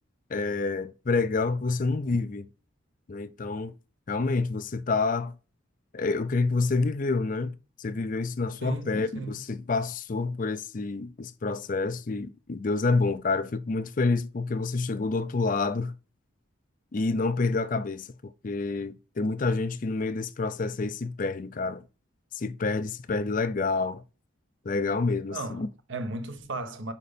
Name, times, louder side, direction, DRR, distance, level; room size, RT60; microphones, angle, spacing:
voice 1, 0.3-2.5 3.1-3.7 4.1-5.3 5.9-15.9 16.9-21.8 22.3-24.0 24.6-25.7, left 3 dB, 40° left, 0.4 m, -28 dB
voice 2, 8.6-9.4 25.3-26.9, right 2 dB, 70° right, 1.0 m, -36 dB
5.2 x 4.2 x 5.1 m
head